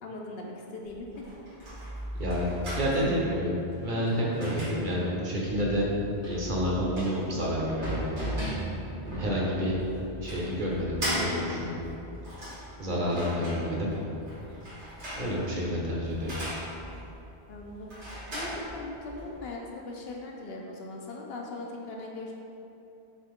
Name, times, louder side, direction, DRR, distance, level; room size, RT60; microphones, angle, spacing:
voice 1, 0.0-1.2 13.3-13.9 17.5-22.3, left 2 dB, 70° left, 0 dB, 0.7 m, -40 dB
sound 1, 0.8-19.4, equal, 85° right, 2.0 m, -38 dB
voice 2, 2.8-5.9 6.2-8.0 9.0-9.7 10.2-11.8 12.8-13.9 15.1-16.3, equal, 50° right, -5 dB, 0.9 m, -29 dB
6.3 x 2.2 x 3.5 m, 2.8 s
omnidirectional pair, 1.1 m